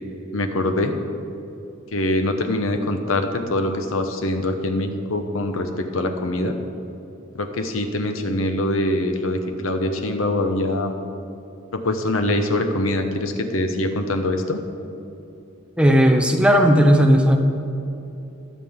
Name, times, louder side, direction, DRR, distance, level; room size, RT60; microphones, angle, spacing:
voice 1, 0.3-0.9 1.9-6.6 7.3-11.0 11.7-14.6, left 1 dB, 75° left, 6 dB, 1.0 m, -23 dB
voice 2, 15.8-17.4, equal, 5° right, 3 dB, 0.8 m, -15 dB
21.5 x 7.6 x 3.7 m, 2.9 s
head